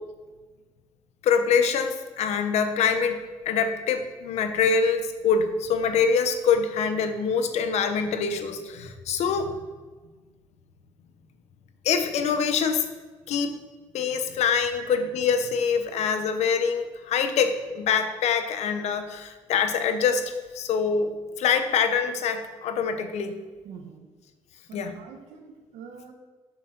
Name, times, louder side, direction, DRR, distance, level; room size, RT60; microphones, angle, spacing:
voice 1, 1.2-9.6 11.8-12.8 13.3-13.6 13.9-23.3 24.7-24.9, left 6 dB, 80° left, 8 dB, 1.0 m, -25 dB
voice 2, 23.6-24.1 24.7-26.1, right 6 dB, 85° right, 4 dB, 1.4 m, -44 dB
8.0 x 6.7 x 6.0 m, 1.3 s
supercardioid pair, 65°, 11 cm